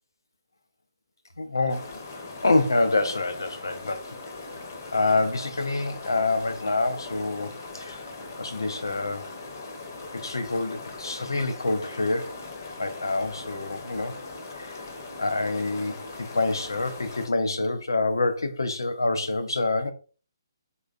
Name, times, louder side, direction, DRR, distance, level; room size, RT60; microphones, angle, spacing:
voice 1, 1.4-2.0 2.4-4.0 4.9-8.1 8.4-9.3 10.1-12.4 12.8-14.1 14.6-14.8 15.2-19.9, left 2 dB, 70° left, 0.6 m, -26 dB
sound 1, 1.7-17.3, left 3 dB, 45° left, 0.9 m, -40 dB
3.8 x 3.1 x 2.4 m
figure-of-eight pair, 135°, 2 cm